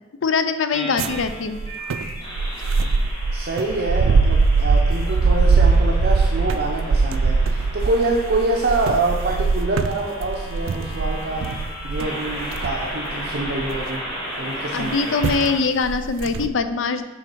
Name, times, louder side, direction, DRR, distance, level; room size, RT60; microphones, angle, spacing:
voice 1, 0.2-1.6 14.7-17.1, left 4 dB, 70° left, 10 dB, 0.5 m, -22 dB
sound 1, 0.7-15.5, equal, 25° left, 2.1 m, -34 dB
sound 2, 1.0-14.1 14.8-15.0 15.2-15.5 15.8-16.5, right 4 dB, 85° right, 0.4 m, -21 dB
voice 2, 3.3-11.5 11.8-14.0 14.4-15.0, right 2 dB, 55° right, -1 dB, 0.7 m, -25 dB
7.0 x 5.5 x 4.5 m, 1.2 s
head